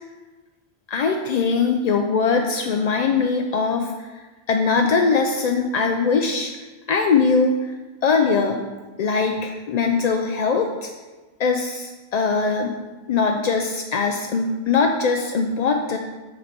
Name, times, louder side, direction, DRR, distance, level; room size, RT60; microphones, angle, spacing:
voice 1, 0.9-6.5 6.9-7.6 8.0-8.6 9.0-10.9 11.4-12.8 13.1-16.0, left 5 dB, 55° left, 3 dB, 0.4 m, -21 dB
6.3 x 3.9 x 6.0 m, 1.2 s
omnidirectional pair, 1.1 m